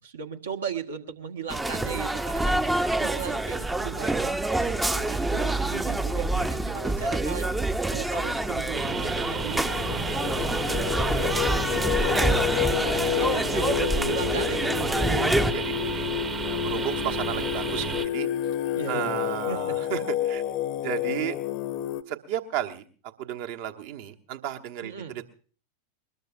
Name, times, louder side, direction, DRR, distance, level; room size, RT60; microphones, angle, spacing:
voice 1, 0.0-11.3 11.7-15.1 18.7-19.7 24.8-25.2, right 7 dB, 65° right, 5 dB, 1.5 m, -37 dB
sound 1, 1.5-15.5, right 2 dB, 10° right, 0.7 m, -27 dB
Singing, 8.2-22.0, left 12 dB, 40° left, 0.8 m, -30 dB
sound 2, 8.7-18.1, right 6 dB, 25° right, 1.0 m, -33 dB
voice 2, 15.1-16.2 16.4-18.3 18.9-20.4 20.8-21.4 22.1-22.8 23.2-25.2, right 11 dB, 50° right, 5 dB, 1.2 m, -33 dB
21.5 x 20.5 x 2.6 m, 0.40 s
figure-of-eight pair, 90°, 0 cm